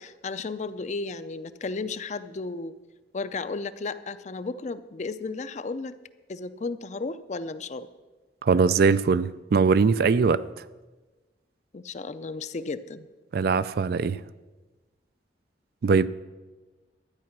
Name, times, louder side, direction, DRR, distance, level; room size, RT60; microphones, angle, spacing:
voice 1, 0.0-2.7 3.1-5.9 6.3-7.9 11.7-13.1, left 3 dB, 40° left, 0.5 m, -34 dB
voice 2, 8.4-10.4 13.3-14.2 15.8-16.1, right 5 dB, 55° right, 0.4 m, -21 dB
12.5 x 9.4 x 6.0 m
head